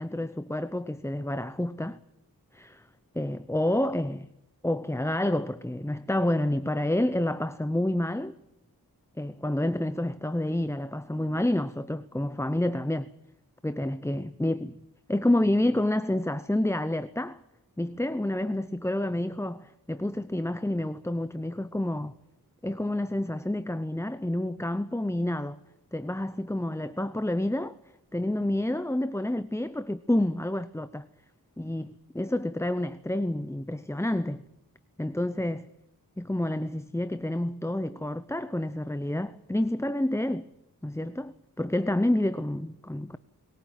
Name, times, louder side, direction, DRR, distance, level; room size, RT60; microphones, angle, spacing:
voice 1, 0.0-2.0 2.5-2.8 3.1-4.3 4.6-8.4 9.2-13.1 13.6-14.7 15.1-17.4 17.8-22.1 22.6-25.6 25.9-27.7 28.1-31.1 31.6-34.4 35.0-35.7 36.2-40.5 40.8-43.2, left 1 dB, 5° left, 0.8 m, -29 dB
22.5 x 16.5 x 9.3 m
cardioid pair, 45°, 39 cm